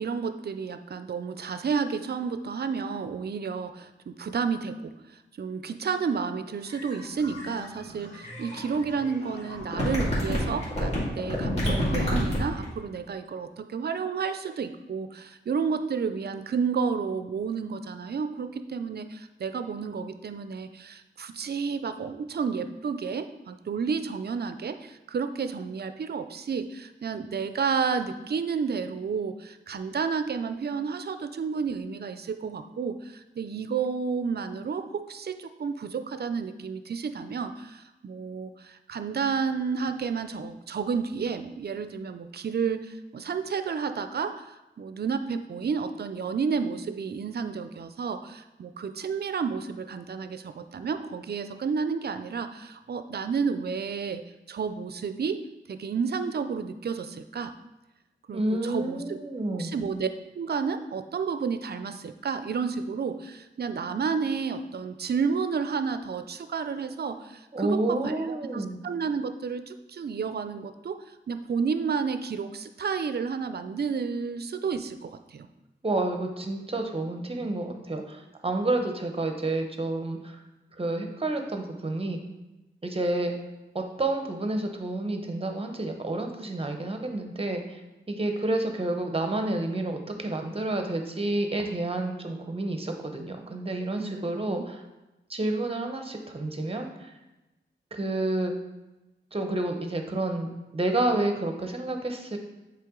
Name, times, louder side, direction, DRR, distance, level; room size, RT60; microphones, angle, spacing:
voice 1, 0.0-54.2 54.5-55.4 55.7-57.5 58.3-59.2 59.5-60.1 60.3-68.2 68.5-75.5 94.0-94.7, right 5 dB, 55° right, 10 dB, 0.4 m, -31 dB
sound 1, 6.7-12.6, equal, 35° left, 2.1 m, -29 dB
voice 2, 58.3-59.7 67.5-68.8 75.8-80.4 80.8-82.2 82.8-83.3 83.7-87.8 88.1-94.8 95.3-97.1 97.9-98.5 99.3-102.4, right 2 dB, 30° right, 4 dB, 0.8 m, -29 dB
7.5 x 3.3 x 3.7 m, 1.0 s
wide cardioid pair, 80°, 20 cm